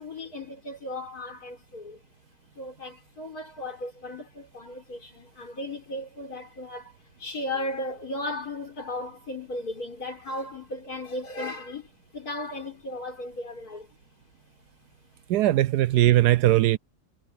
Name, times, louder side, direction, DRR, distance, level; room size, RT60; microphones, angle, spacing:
voice 1, 0.0-2.0 2.6-13.9, left 1 dB, 60° left, 5.4 m, -36 dB
voice 2, 15.3-16.8, right 15 dB, 75° right, 1.1 m, -20 dB
omnidirectional pair, 1.8 m